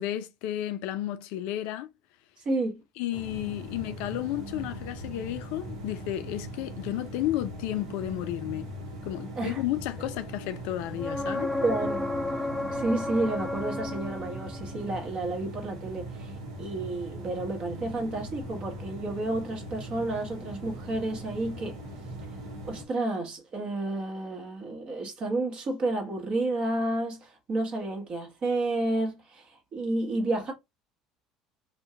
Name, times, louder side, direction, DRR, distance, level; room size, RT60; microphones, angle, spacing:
voice 1, 0.0-1.9 3.0-8.7 9.0-11.5, left 13 dB, 65° left, 0.3 m, -32 dB
voice 2, 2.4-2.8 9.4-9.6 11.6-12.1 12.4-16.3 16.6-21.8 22.6-30.5, right 2 dB, 40° right, 1.1 m, -31 dB
sound 1, 3.1-22.9, right 1 dB, 70° right, 0.8 m, -40 dB
sound 2, 11.0-14.7 18.4-18.5, left 2 dB, ahead, 0.5 m, -32 dB
2.6 x 2.1 x 3.5 m
hypercardioid pair, 65°, 2 cm